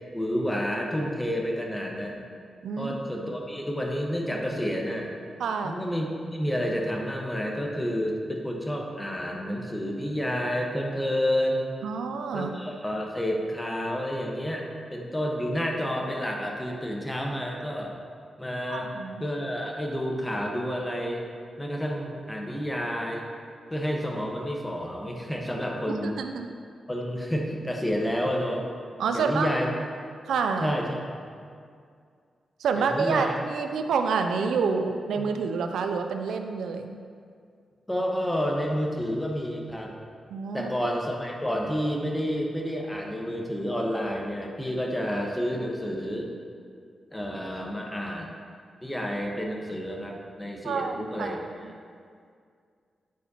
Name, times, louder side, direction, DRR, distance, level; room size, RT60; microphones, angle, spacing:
voice 1, 0.1-2.2 2.8-5.1 5.6-11.7 12.3-18.0 18.4-18.9 19.2-21.2 21.6-23.3 23.7-26.2 26.9-28.7 29.1-29.7 30.6-31.0 32.8-33.4 35.2-35.3 37.9-39.9 40.5-46.3 47.1-48.3 48.8-51.4, equal, 15° left, 0 dB, 1.1 m, -30 dB
voice 2, 2.6-3.3 5.4-5.8 11.8-12.6 18.7-19.3 25.9-26.5 29.0-29.5 30.3-30.7 32.6-37.0 40.3-40.7 50.6-51.4, right 5 dB, 85° right, 6 dB, 0.3 m, -28 dB
9.3 x 4.2 x 2.8 m, 2.2 s
supercardioid pair, 50°, 0 cm